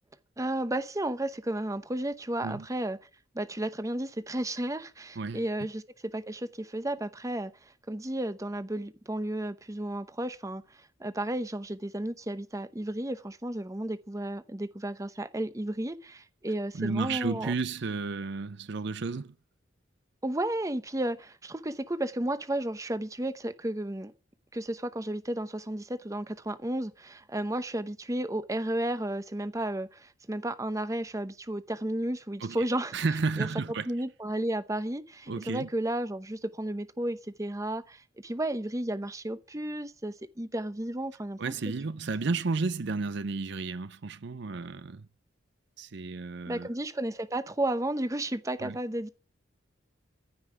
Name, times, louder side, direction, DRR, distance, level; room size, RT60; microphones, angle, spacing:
voice 1, 0.4-3.0 3.3-10.6 11.0-17.5 20.2-24.1 24.5-32.9 33.4-33.5 33.9-41.5 46.5-49.1, right 1 dB, 15° right, 0.8 m, -33 dB
voice 2, 16.7-19.3 32.4-33.9 35.3-35.7 41.4-45.1 45.8-46.7 48.6-48.8, right 4 dB, 60° right, 0.6 m, -32 dB
15.0 x 5.7 x 9.4 m
head